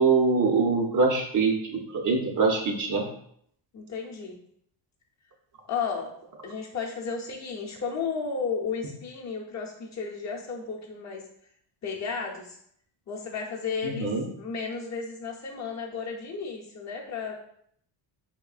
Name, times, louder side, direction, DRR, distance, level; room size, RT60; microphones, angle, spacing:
voice 1, 0.0-3.1 13.8-14.3, right 4 dB, 40° right, 1 dB, 0.6 m, -24 dB
voice 2, 3.7-4.4 5.7-6.1 6.4-11.2 11.8-12.6 13.1-14.1 14.4-17.3, left 5 dB, 35° left, -2 dB, 0.7 m, -33 dB
3.6 x 3.1 x 2.4 m, 0.68 s
cardioid pair, 125°, 47 cm